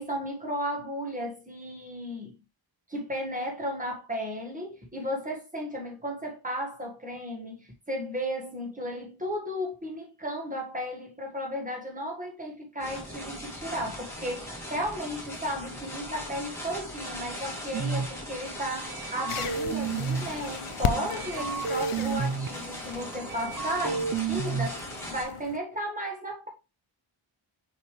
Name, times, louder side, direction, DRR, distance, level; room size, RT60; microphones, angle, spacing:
voice 1, 0.0-2.3 2.9-26.5, equal, 15° right, 1.7 m, -34 dB
sound 1, 12.8-25.2, equal, 5° left, 2.8 m, -39 dB
sound 2, 17.7-18.1 18.6-20.3 20.8-22.5 23.0-24.7, right 6 dB, 45° right, 0.6 m, -31 dB
sound 3, 19.3-25.6, left 9 dB, 85° left, 0.7 m, -37 dB
6.6 x 5.3 x 3.3 m
wide cardioid pair, 150°, 49 cm